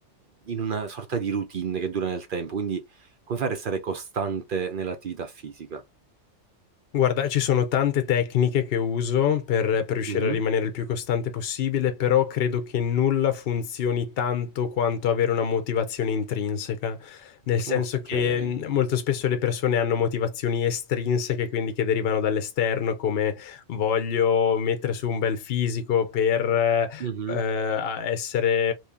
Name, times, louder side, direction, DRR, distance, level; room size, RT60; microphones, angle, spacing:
voice 1, 0.5-2.8 3.3-5.8 10.1-10.4 17.7-17.8 18.1-18.5 27.0-27.5, right 6 dB, 55° right, 0.7 m, -30 dB
voice 2, 6.9-28.7, left 8 dB, 60° left, 0.8 m, -25 dB
3.1 x 2.7 x 3.5 m
omnidirectional pair, 1.3 m